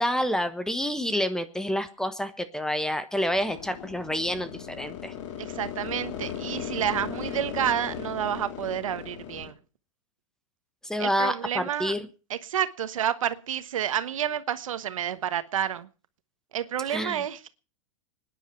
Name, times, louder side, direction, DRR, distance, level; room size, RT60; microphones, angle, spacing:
voice 1, 0.0-5.1 10.8-12.0 16.9-17.2, equal, 5° left, 1.3 m, -28 dB
sound 1, 3.3-9.5, left 10 dB, 65° left, 3.2 m, -37 dB
voice 2, 5.4-9.6 11.0-11.9 12.3-15.9 16.5-17.5, right 10 dB, 90° right, 1.3 m, -29 dB
25.0 x 10.0 x 4.6 m
hypercardioid pair, 135°, 17 cm